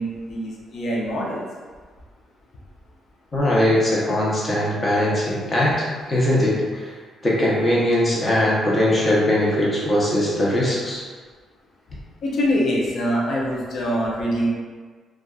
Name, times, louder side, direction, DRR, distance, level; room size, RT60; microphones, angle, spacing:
voice 1, 0.0-1.4 12.2-14.5, equal, 60° left, -4 dB, 0.5 m, -24 dB
voice 2, 3.3-6.9 7.2-11.0, left 1 dB, 30° left, -6 dB, 0.8 m, -20 dB
2.5 x 2.3 x 2.3 m, 1.5 s
cardioid pair, 90°, 0 cm